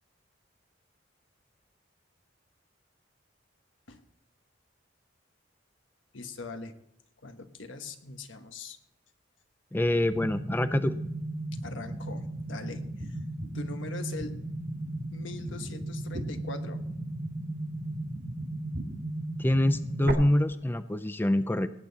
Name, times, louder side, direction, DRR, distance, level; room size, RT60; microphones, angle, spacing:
voice 1, 6.1-6.7 7.2-8.8 11.6-13.2 13.5-14.3 15.1-16.8, left 3 dB, 85° left, 7 dB, 1.4 m, -41 dB
voice 2, 9.7-11.0 19.4-21.7, left 1 dB, 10° left, 12 dB, 0.4 m, -25 dB
sound 1, 10.1-20.1, right 1 dB, 55° right, 1.9 m, -35 dB
18.0 x 8.9 x 4.1 m, 0.79 s
head